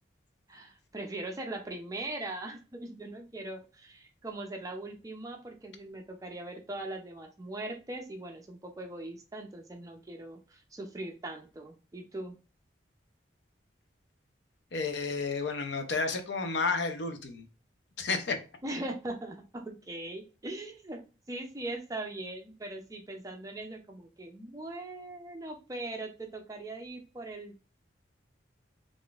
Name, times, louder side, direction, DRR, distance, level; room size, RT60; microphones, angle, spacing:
voice 1, 0.5-12.4 18.6-21.0 21.3-27.5, right 2 dB, 20° right, 0.4 m, -40 dB
voice 2, 14.7-17.4 18.0-18.4, left 4 dB, 65° left, 0.5 m, -31 dB
3.7 x 2.5 x 2.3 m
head